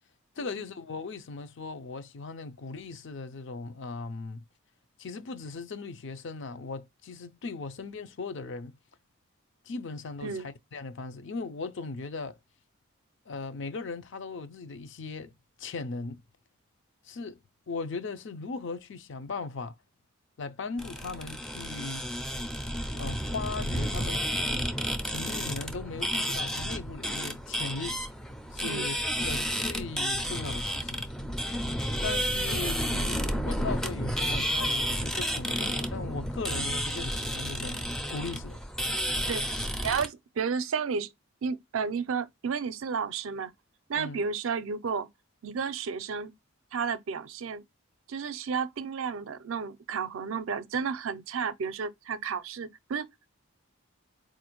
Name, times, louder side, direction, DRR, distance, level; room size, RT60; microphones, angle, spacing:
voice 1, 0.4-4.4 5.0-8.8 9.6-12.4 13.3-15.3 15.6-16.2 17.0-17.4 17.7-19.8 20.4-22.1 22.9-24.7 25.1-28.0 28.5-31.1 31.9-37.8 38.1-38.6 43.9-44.2, left 4 dB, 60° left, 0.5 m, -38 dB
sound 1, 20.8-40.1, equal, 5° left, 0.4 m, -31 dB
voice 2, 28.6-28.9 39.3-41.1 41.4-43.5 43.9-45.1 45.4-46.3 46.7-47.6 48.1-53.1, right 6 dB, 70° right, 0.5 m, -32 dB
4.2 x 2.5 x 2.9 m
head